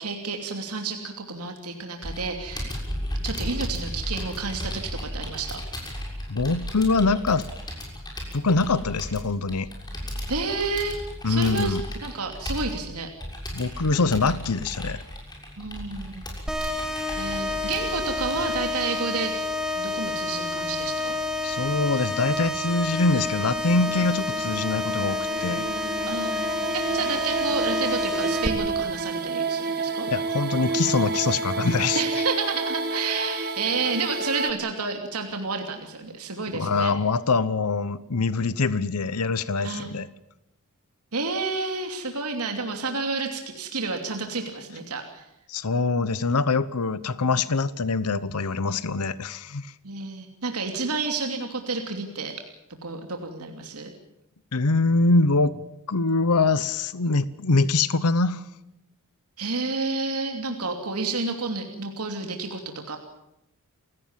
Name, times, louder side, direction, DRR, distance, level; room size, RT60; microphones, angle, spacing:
voice 1, 0.0-2.8 3.2-5.6 10.3-11.0 11.2-13.1 15.6-16.3 17.1-19.3 19.7-21.2 26.1-30.1 31.9-36.9 39.6-39.9 41.1-45.3 49.8-52.3 52.8-53.9 59.4-63.0, right 4 dB, 90° right, 4 dB, 2.9 m, -30 dB
Computer keyboard, 2.0-18.6, equal, 20° left, 6.7 m, -35 dB
voice 2, 6.3-7.5 8.3-9.7 11.2-11.8 13.5-15.0 21.4-25.6 30.0-32.0 36.5-40.1 45.5-49.7 54.5-55.6 55.9-58.4, left 3 dB, 90° left, 16 dB, 0.9 m, -24 dB
sound 1, 16.5-28.5, left 2 dB, 5° right, 2.1 m, -29 dB
sound 2, 23.6-34.5, right 4 dB, 45° right, 1.5 m, -30 dB
29.5 x 17.0 x 7.4 m, 0.88 s
head